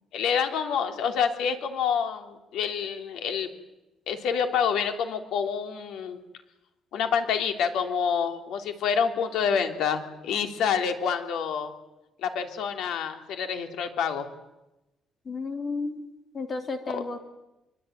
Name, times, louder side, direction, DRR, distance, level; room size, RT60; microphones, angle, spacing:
voice 1, 0.1-3.5 4.1-6.2 6.9-11.7 12.2-14.3 16.9-17.0, left 7 dB, 85° left, 6 dB, 3.2 m, -27 dB
voice 2, 15.2-16.0 16.3-17.2, left 3 dB, 30° left, 5 dB, 3.3 m, -32 dB
25.5 x 23.0 x 9.4 m, 0.96 s
cardioid pair, 155°, 0 cm